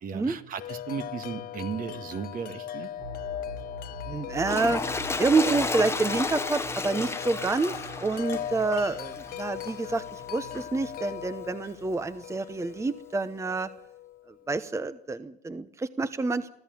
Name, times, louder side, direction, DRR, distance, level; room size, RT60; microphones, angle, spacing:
voice 1, 0.0-2.9, right 6 dB, 55° right, 9 dB, 2.0 m, -35 dB
Wind chime, 0.6-14.5, left 12 dB, 60° left, 0.8 m, -39 dB
sound 1, 3.0-12.8, equal, 75° right, 5.4 m, -45 dB
voice 2, 4.1-4.8 5.2-7.7 8.0-13.7 14.5-16.5, right 3 dB, 15° right, 13 dB, 0.9 m, -28 dB
Toilet flush, 4.4-9.8 10.5-10.6, left 3 dB, 15° left, 1.1 m, -33 dB
24.5 x 14.5 x 9.3 m, 0.82 s
cardioid pair, 110°, 17 cm